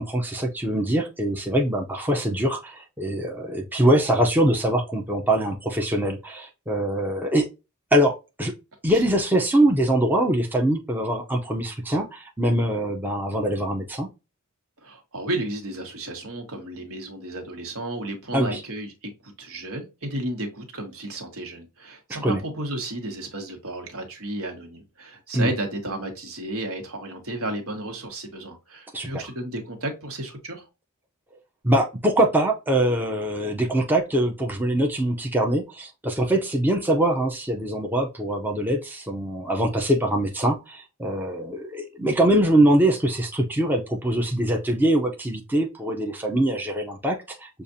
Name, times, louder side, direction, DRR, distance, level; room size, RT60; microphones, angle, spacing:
voice 1, 0.0-7.5 7.9-8.1 8.4-8.5 8.8-14.1 18.3-18.6 22.1-22.4 25.3-25.5 28.9-29.1 31.6-47.6, right 1 dB, 10° right, 0.6 m, -23 dB
voice 2, 14.8-30.6, right 1 dB, 65° right, 1.3 m, -33 dB
6.8 x 2.4 x 2.6 m
head